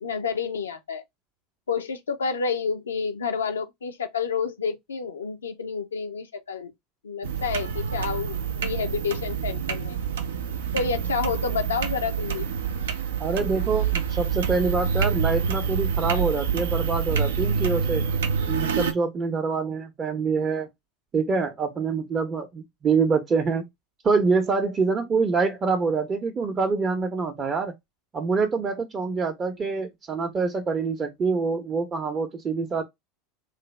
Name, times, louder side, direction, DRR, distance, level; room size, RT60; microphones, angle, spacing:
voice 1, 0.0-1.0 1.7-6.7 7.0-10.0 10.7-12.5, left 5 dB, 85° left, 0.5 m, -29 dB
sound 1, 7.2-18.9, right 6 dB, 80° right, 0.5 m, -27 dB
voice 2, 13.2-18.1 18.5-20.7 21.1-23.7 24.0-27.7 28.1-32.8, right 4 dB, 30° right, 0.6 m, -25 dB
3.2 x 2.0 x 3.1 m
hypercardioid pair, 85°, 0 cm